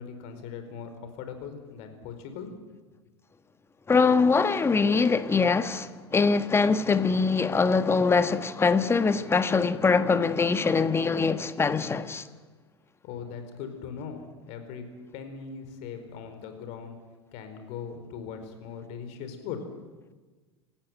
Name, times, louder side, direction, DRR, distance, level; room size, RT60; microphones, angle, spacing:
voice 1, 0.0-2.5 13.0-14.2 14.5-14.9 15.1-17.0 17.3-19.6, left 7 dB, 50° left, 4.6 m, -39 dB
voice 2, 3.9-12.2, left 4 dB, 15° left, 1.5 m, -23 dB
27.5 x 15.0 x 9.5 m
figure-of-eight pair, 80°, 14 cm